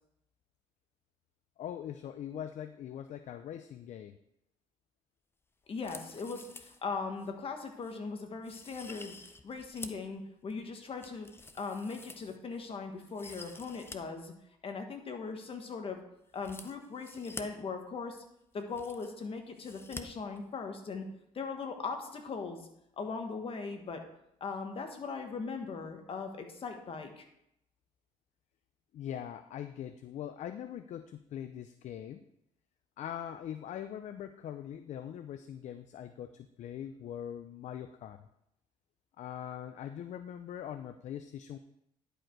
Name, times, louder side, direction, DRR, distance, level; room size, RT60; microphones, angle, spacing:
voice 1, 1.6-4.2 28.9-32.2 33.0-38.3 39.2-41.6, left 10 dB, 60° left, 9 dB, 0.5 m, -42 dB
voice 2, 5.7-9.1 9.4-11.3 11.5-14.3 14.6-16.0 16.3-18.2 18.5-21.1 21.3-22.7 23.0-24.0 24.4-27.2, left 4 dB, 45° left, 4 dB, 1.5 m, -39 dB
sound 1, 5.7-6.8 7.2-7.3 7.8-8.0 8.4-10.1 10.5-12.6 13.0-14.0 14.3-14.4 16.3-17.4 18.2-18.3 18.5-19.2 19.6-20.0 20.3-20.4, left 3 dB, 15° left, 0.7 m, -48 dB
11.0 x 5.1 x 4.6 m, 0.78 s
cardioid pair, 100°, 14 cm